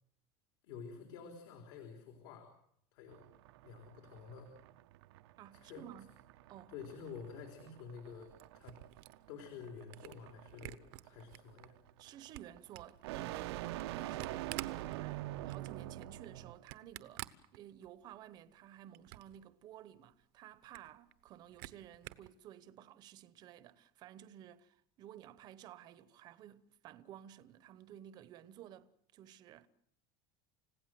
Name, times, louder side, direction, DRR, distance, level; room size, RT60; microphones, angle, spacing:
voice 1, 0.6-2.5 2.9-3.3 3.6-4.5 5.5-5.8 6.7-8.8 9.3-11.7, left 6 dB, 65° left, 3.9 m, -50 dB
sound 1, 3.1-16.6, right 15 dB, 85° right, 1.1 m, -46 dB
voice 2, 5.4-6.1 6.5-6.7 12.0-29.7, right 11 dB, 30° right, 1.0 m, -54 dB
Camera, 8.0-11.7 12.1-18.1 18.5-19.4 19.8-19.9 20.1-20.2 20.5-22.3, right 19 dB, 60° right, 1.0 m, -50 dB
29.5 x 16.5 x 7.8 m
cardioid pair, 175°, 13 cm